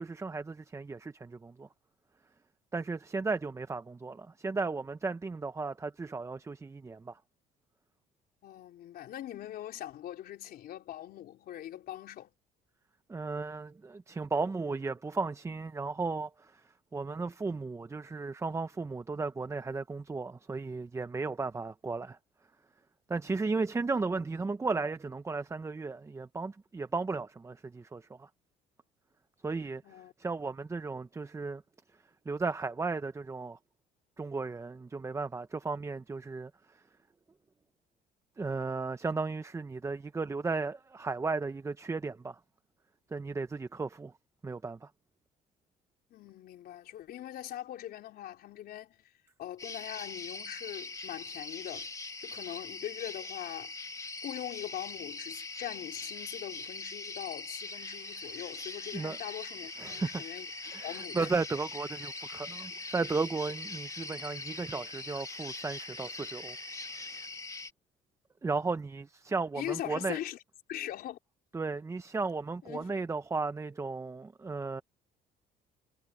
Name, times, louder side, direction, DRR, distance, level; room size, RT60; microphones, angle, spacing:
voice 1, 0.0-1.7 2.7-7.2 13.1-16.6 16.9-22.2 23.1-28.3 29.4-29.8 30.2-31.6 32.3-33.6 34.2-36.5 38.4-42.4 43.1-44.1 44.4-44.9 58.9-59.2 59.8-60.2 60.7-66.6 68.4-70.2 71.5-74.8, right 4 dB, 15° right, 0.7 m, -35 dB
voice 2, 8.4-12.3 29.8-30.1 46.1-49.1 49.4-51.9 52.2-53.7 54.2-60.5 60.7-61.3 69.5-70.4 70.7-71.2 72.6-72.9, left 12 dB, 65° left, 4.2 m, -41 dB
sound 1, 49.6-67.7, left 3 dB, 20° left, 1.8 m, -42 dB
sound 2, 57.6-67.3, right 8 dB, 50° right, 4.4 m, -54 dB
cardioid pair, 110°, 17 cm